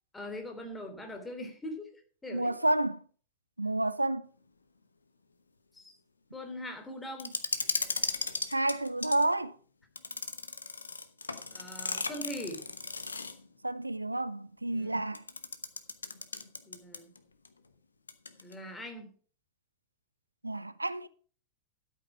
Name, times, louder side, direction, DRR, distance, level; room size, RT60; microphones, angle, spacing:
voice 1, 0.1-1.9 2.2-2.5 5.7-5.9 6.3-7.4 11.5-12.7 14.7-15.0 16.6-17.1 18.4-19.1, left 1 dB, 10° left, 3.2 m, -41 dB
voice 2, 2.3-3.0 3.6-4.3 8.5-9.6 13.6-15.2 20.4-21.1, right 2 dB, 85° right, 0.5 m, -30 dB
sound 1, 7.2-9.3 10.0-13.5 15.1-17.2 17.4-17.5 18.1-18.5, left 4 dB, 75° left, 0.9 m, -36 dB
12.5 x 8.4 x 4.7 m
figure-of-eight pair, 90°, 0 cm